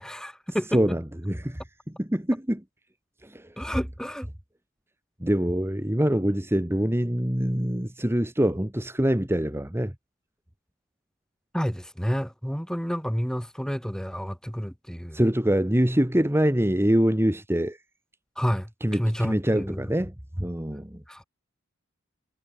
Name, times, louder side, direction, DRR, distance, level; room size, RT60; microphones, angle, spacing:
voice 1, 0.0-0.8 3.6-4.3 11.5-15.2 18.4-19.9 21.1-21.2, equal, 5° left, 3.3 m, -30 dB
voice 2, 0.7-1.6 2.0-2.6 3.2-3.5 5.2-9.9 15.1-17.8 18.8-21.0, equal, 10° right, 1.7 m, -24 dB
head